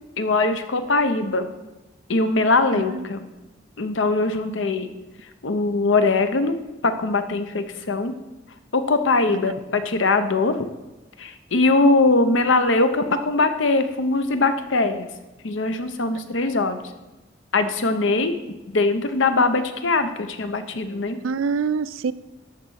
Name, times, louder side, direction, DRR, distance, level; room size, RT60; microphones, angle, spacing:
voice 1, 0.2-1.5 2.1-3.3 3.8-4.9 5.4-6.6 6.8-8.1 8.7-10.6 11.2-15.1 15.4-16.8 17.5-18.3 18.7-21.2, left 3 dB, 80° left, 9 dB, 0.8 m, -21 dB
voice 2, 2.7-3.1 9.3-9.6 21.2-22.1, right 5 dB, 90° right, 16 dB, 0.4 m, -26 dB
12.0 x 4.1 x 6.4 m, 1.1 s
head